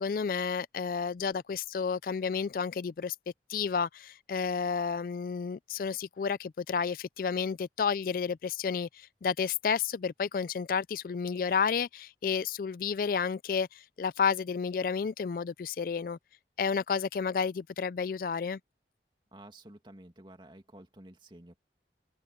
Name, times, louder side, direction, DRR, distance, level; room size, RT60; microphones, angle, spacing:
voice 1, 0.0-3.2 3.5-16.2 16.6-18.6, left 6 dB, 50° left, 0.3 m, -31 dB
voice 2, 19.3-21.6, right 1 dB, 25° right, 2.3 m, -51 dB
open air
head